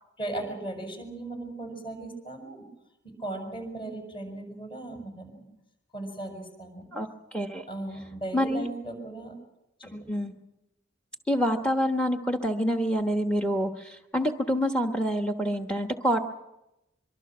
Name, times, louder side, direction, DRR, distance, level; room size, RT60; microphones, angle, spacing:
voice 1, 0.2-2.6 3.2-5.5 5.9-6.8 7.7-9.3 9.8-9.9, right 2 dB, 30° left, 6 dB, 6.6 m, -37 dB
voice 2, 6.9-7.6 8.3-8.7 9.9-10.3 11.3-16.2, equal, 5° left, 4 dB, 1.2 m, -27 dB
25.0 x 24.0 x 6.2 m, 0.88 s
head